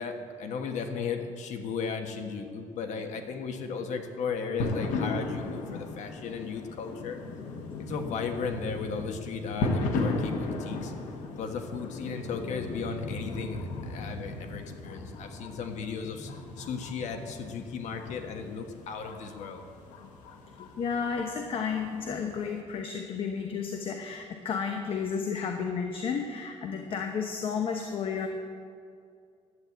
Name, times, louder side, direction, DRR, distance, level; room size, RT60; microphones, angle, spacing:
voice 1, 0.0-7.2 7.8-10.9 11.4-16.3 16.6-19.6, left 5 dB, 70° left, 5 dB, 1.3 m, -35 dB
sound 1, 4.6-22.6, left 2 dB, 90° left, 1.5 m, -36 dB
voice 2, 20.6-28.3, left 6 dB, 45° left, 4 dB, 0.9 m, -32 dB
11.5 x 9.0 x 8.1 m, 2.3 s
cardioid pair, 160°, 13 cm